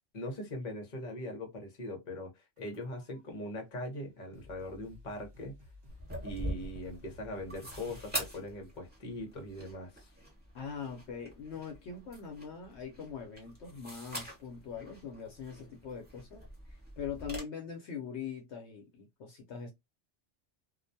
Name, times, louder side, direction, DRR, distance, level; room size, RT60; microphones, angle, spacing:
voice 1, 0.1-5.6 6.2-10.1, left 1 dB, 45° left, 0.9 m, -41 dB
sound 1, 2.6-3.2 4.0-4.1 4.3-8.5, left 2 dB, 40° right, 0.9 m, -55 dB
sound 2, 5.9-17.4, equal, 10° right, 1.0 m, -44 dB
voice 2, 10.5-19.7, left 6 dB, 70° left, 0.9 m, -42 dB
2.4 x 2.1 x 2.6 m
omnidirectional pair, 1.2 m